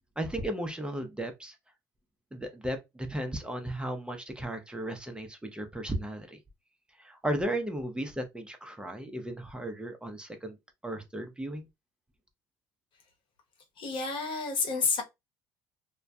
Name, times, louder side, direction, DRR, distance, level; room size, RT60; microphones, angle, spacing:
voice 1, 0.2-1.6 2.3-6.4 7.0-10.6 10.8-11.7, right 1 dB, 10° right, 0.6 m, -35 dB
voice 2, 13.8-15.0, left 4 dB, 60° left, 1.0 m, -29 dB
2.2 x 2.1 x 2.6 m
hypercardioid pair, 70°, 10 cm